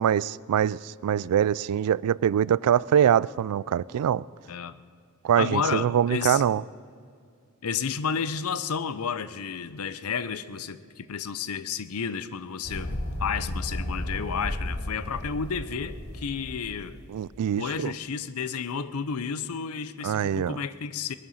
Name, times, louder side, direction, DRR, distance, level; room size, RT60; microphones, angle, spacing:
voice 1, 0.0-4.2 5.2-6.6 17.1-17.9 20.0-20.6, right 9 dB, 90° right, 0.3 m, -24 dB
voice 2, 5.4-6.4 7.6-17.0 17.6-21.1, left 6 dB, 75° left, 0.6 m, -31 dB
sound 1, 12.6-17.2, left 1 dB, 50° left, 1.5 m, -34 dB
20.5 x 11.0 x 5.7 m
head